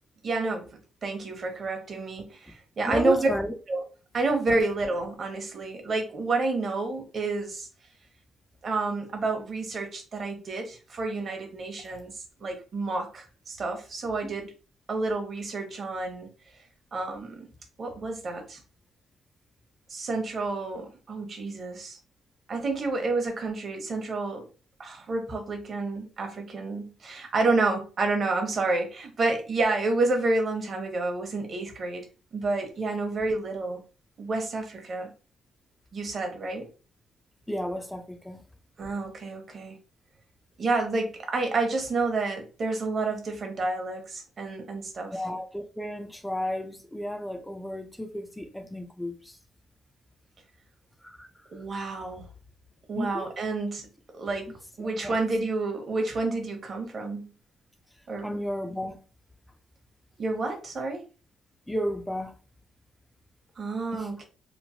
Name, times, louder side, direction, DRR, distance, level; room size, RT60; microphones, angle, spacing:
voice 1, 0.2-0.6 1.0-3.3 3.7-3.8 4.1-7.7 8.6-12.1 12.4-14.5 14.9-16.3 16.9-17.5 17.8-18.6 19.9-22.0 22.5-24.4 24.8-32.0 32.3-33.8 34.2-35.1 35.9-36.7 38.8-39.8 40.6-45.1 51.5-52.3 52.9-53.9 54.1-54.5 54.8-57.3 58.1-58.4 60.2-61.0 63.6-64.2, right 3 dB, 45° right, 0.9 m, -29 dB
voice 2, 2.9-3.5 14.2-14.3 37.5-38.4 45.1-49.4 51.0-51.3 52.9-53.3 54.8-55.2 58.2-59.0 61.7-62.4 63.9-64.1, left 1 dB, 5° left, 0.4 m, -33 dB
3.0 x 2.0 x 2.7 m
cardioid pair, 90°, 0 cm